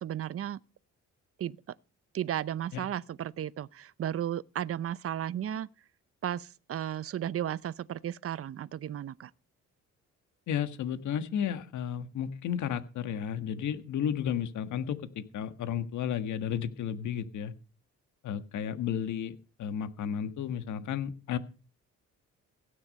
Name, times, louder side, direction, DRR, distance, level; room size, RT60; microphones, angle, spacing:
voice 1, 0.0-0.6 1.4-1.6 2.1-5.7 6.2-9.3, right 10 dB, 50° right, 0.7 m, -34 dB
voice 2, 10.5-17.5 18.2-21.4, left 9 dB, 75° left, 1.6 m, -33 dB
16.5 x 9.7 x 5.3 m
cardioid pair, 90°, 30 cm